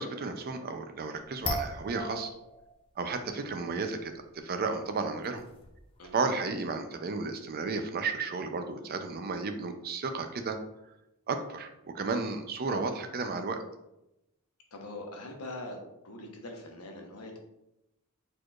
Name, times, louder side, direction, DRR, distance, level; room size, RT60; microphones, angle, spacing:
voice 1, 0.0-2.3 3.0-5.4 6.1-10.6 11.3-11.7 11.9-13.6, right 4 dB, 45° right, 7 dB, 0.5 m, -33 dB
sound 1, 1.4-2.7 3.0-3.1 4.2-4.3 5.0-5.1 5.2-6.1, left 1 dB, 25° left, 0.6 m, -37 dB
voice 2, 14.7-15.8 16.0-17.4, left 2 dB, 85° left, 2 dB, 0.9 m, -42 dB
4.7 x 4.3 x 2.4 m, 0.88 s
head